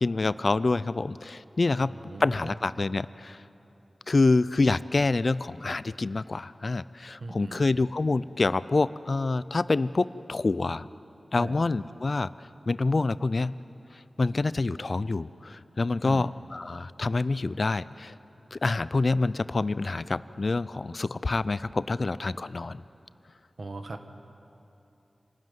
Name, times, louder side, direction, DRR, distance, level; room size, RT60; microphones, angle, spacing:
voice 1, 0.0-1.9 2.2-3.4 4.1-10.9 11.3-12.3 12.7-13.5 14.2-18.1 18.5-22.8, left 3 dB, 60° left, 16 dB, 0.4 m, -27 dB
voice 2, 1.8-2.5 7.2-7.7 11.4-11.6 16.0-16.3 23.6-24.0, right 2 dB, 70° right, 6 dB, 1.5 m, -39 dB
26.5 x 13.0 x 9.3 m, 2.9 s
cardioid pair, 50°, 0 cm